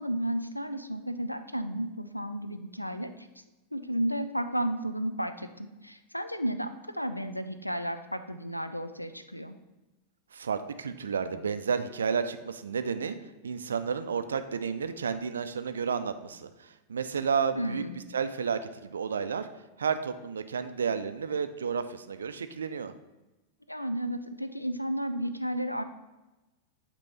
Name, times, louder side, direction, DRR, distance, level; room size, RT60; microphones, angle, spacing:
voice 1, 0.0-3.3 3.7-9.6 17.6-18.0 23.7-25.8, equal, 90° left, 10 dB, 0.4 m, -33 dB
voice 2, 10.3-13.2 13.4-17.8 18.1-19.5 19.8-22.9, right 6 dB, 70° right, 10 dB, 0.4 m, -31 dB
8.2 x 3.0 x 5.6 m, 1.0 s
figure-of-eight pair, 90°, 0 cm